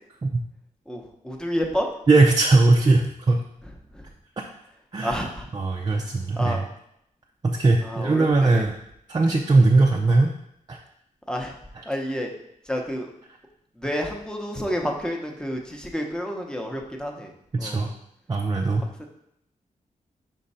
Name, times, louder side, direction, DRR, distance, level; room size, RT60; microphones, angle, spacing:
voice 1, 0.9-1.9 3.9-4.0 5.0-5.4 6.4-6.6 7.8-8.6 11.3-11.5 11.9-12.3 12.7-13.1 13.8-17.3 17.6-17.9 19.0-19.1, equal, 5° left, 2 dB, 0.8 m, -29 dB
voice 2, 2.1-3.4 4.9-5.3 5.5-6.7 7.4-8.7 9.1-10.3 10.7-10.8 11.8-11.9 17.5-17.9 18.3-18.9, right 3 dB, 30° right, 0 dB, 0.5 m, -20 dB
5.3 x 3.7 x 5.5 m, 0.75 s
wide cardioid pair, 145°, 14 cm